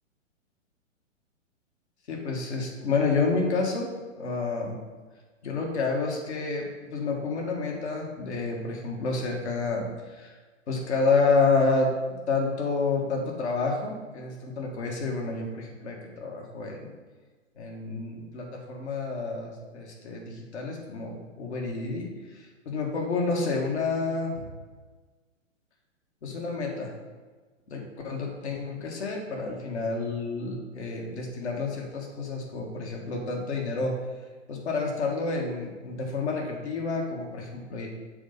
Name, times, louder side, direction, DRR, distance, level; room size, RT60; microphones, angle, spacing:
voice 1, 2.1-3.9 4.1-4.8 5.4-10.3 10.7-11.9 12.3-16.9 17.6-24.4 26.2-26.9 27.7-33.9 34.5-37.9, left 3 dB, 60° left, 0 dB, 1.8 m, -29 dB
7.0 x 4.1 x 5.4 m, 1.4 s
figure-of-eight pair, 120°, 38 cm